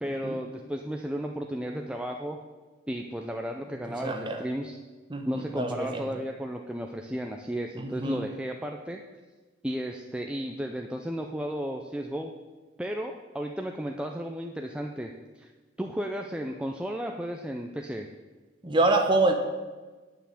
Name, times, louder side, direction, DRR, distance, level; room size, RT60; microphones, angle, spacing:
voice 1, 0.0-2.4 2.9-4.8 5.2-9.0 9.6-12.3 12.8-15.5 15.8-18.1, equal, 5° right, 2 dB, 0.5 m, -34 dB
voice 2, 3.9-4.4 5.1-6.2 7.8-8.2 18.6-19.3, right 2 dB, 25° right, 4 dB, 1.2 m, -26 dB
9.8 x 5.8 x 8.4 m, 1.3 s
head